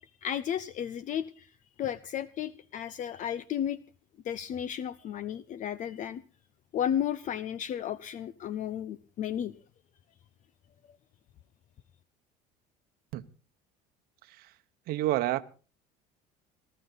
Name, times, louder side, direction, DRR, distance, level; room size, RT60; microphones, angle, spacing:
voice 1, 0.2-1.5 1.8-3.8 4.2-6.2 6.7-9.5, left 10 dB, 50° left, 0.7 m, -33 dB
voice 2, 14.9-15.4, right 15 dB, 65° right, 0.9 m, -29 dB
19.5 x 13.5 x 4.1 m
supercardioid pair, 105°, 17 cm